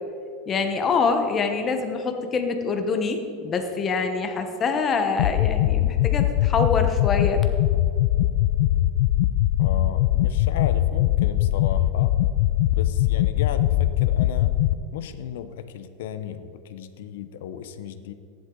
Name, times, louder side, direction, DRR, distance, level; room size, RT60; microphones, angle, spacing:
voice 1, 0.5-7.4, left 4 dB, 20° left, 6 dB, 1.0 m, -25 dB
sound 1, 5.2-14.7, left 14 dB, 60° left, 0.3 m, -21 dB
voice 2, 9.6-12.2 12.7-14.5 14.9-18.1, left 8 dB, 75° left, 10 dB, 0.9 m, -35 dB
14.5 x 11.0 x 3.9 m, 2.5 s
supercardioid pair, 160°, 0 cm